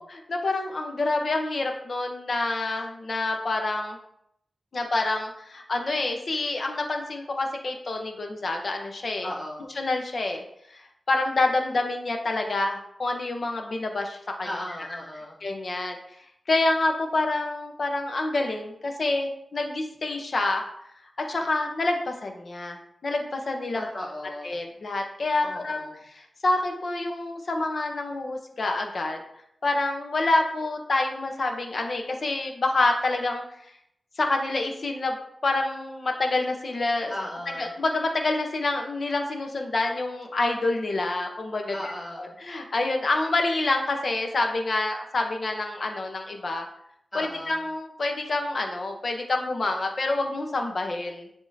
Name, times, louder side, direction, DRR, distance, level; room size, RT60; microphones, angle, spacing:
voice 1, 0.1-4.0 4.7-9.3 9.8-10.4 10.7-10.8 11.1-14.5 14.8-15.0 15.4-16.0 16.5-20.6 21.3-23.8 24.4-29.2 29.6-33.4 34.2-35.2 35.4-37.1 37.6-41.9 42.2-46.6 47.1-51.3, left 2 dB, 50° left, 3 dB, 1.0 m, -27 dB
voice 2, 9.2-9.7 14.4-15.4 23.7-24.5 25.4-26.0 37.1-37.7 41.7-42.4 47.1-47.6, left 1 dB, 30° left, -7 dB, 2.3 m, -36 dB
10.5 x 3.6 x 2.8 m, 0.75 s
wide cardioid pair, 130°, 0 cm